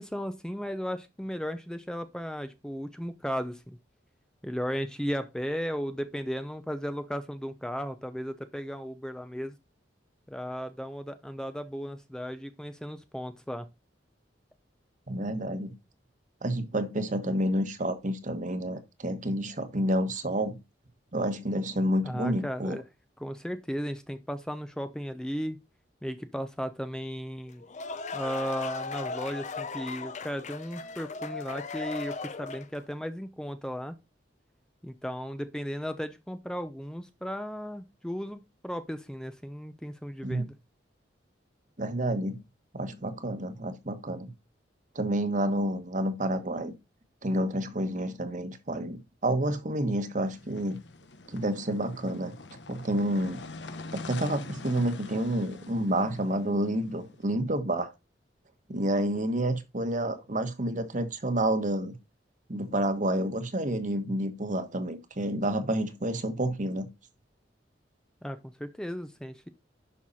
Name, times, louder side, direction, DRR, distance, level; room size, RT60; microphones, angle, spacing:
voice 1, 0.0-3.8 4.4-9.5 10.3-13.7 22.0-22.8 23.2-25.6 26.0-27.6 28.1-33.9 34.8-40.5 68.2-69.5, equal, 5° left, 0.6 m, -35 dB
voice 2, 15.1-15.7 16.4-20.6 21.1-22.8 40.2-40.4 41.8-42.4 42.7-44.3 44.9-46.7 47.2-50.8 51.3-52.3 52.7-53.4 53.9-57.9 58.7-62.0 62.5-66.9, right 1 dB, 45° right, 1.4 m, -29 dB
sound 1, 27.5-32.8, left 4 dB, 40° left, 0.7 m, -37 dB
sound 2, 50.3-57.3, left 3 dB, 75° left, 1.1 m, -45 dB
11.0 x 5.8 x 4.2 m
head